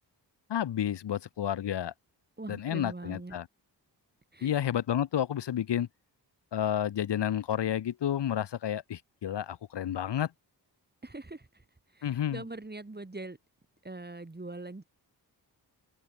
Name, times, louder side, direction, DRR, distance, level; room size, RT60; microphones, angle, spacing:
voice 1, 0.5-1.9 2.5-3.5 4.4-5.9 6.5-10.3 12.0-12.4, left 10 dB, 80° left, 1.0 m, -30 dB
voice 2, 2.4-3.4 4.3-4.5 11.0-13.4 13.8-14.8, right 2 dB, 25° right, 5.6 m, -42 dB
open air
wide cardioid pair, 90°, 42 cm